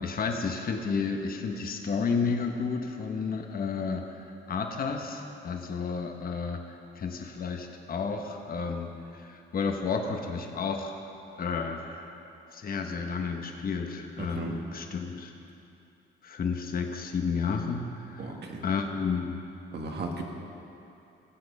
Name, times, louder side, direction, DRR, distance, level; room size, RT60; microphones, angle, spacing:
voice 1, 0.0-6.7 7.0-11.0 11.4-12.1 12.5-15.3 16.2-18.3 18.6-19.4, left 5 dB, 45° left, 4 dB, 1.1 m, -31 dB
voice 2, 14.2-14.6 18.2-18.6 19.7-20.2, right 3 dB, 60° right, 1 dB, 1.7 m, -35 dB
15.5 x 7.8 x 5.4 m, 2.8 s
cardioid pair, 90°, 20 cm